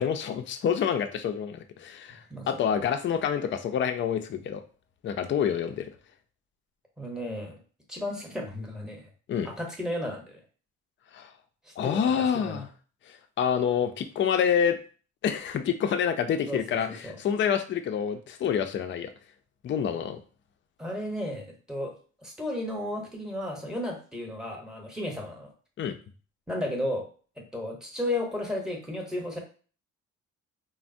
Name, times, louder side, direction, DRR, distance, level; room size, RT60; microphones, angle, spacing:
voice 1, 0.0-4.6 5.0-5.9 9.3-9.5 11.1-11.3 11.8-12.7 13.1-14.8 15.2-19.1 19.6-20.2 25.8-26.0, left 8 dB, 40° left, 8 dB, 0.4 m, -27 dB
voice 2, 7.0-7.6 7.9-9.1 9.4-10.4 11.6-12.6 16.5-17.1 20.8-22.0 22.2-25.5 26.5-27.1 27.4-29.4, left 1 dB, ahead, 0 dB, 0.8 m, -34 dB
3.3 x 2.0 x 2.5 m, 0.39 s
cardioid pair, 90°, 30 cm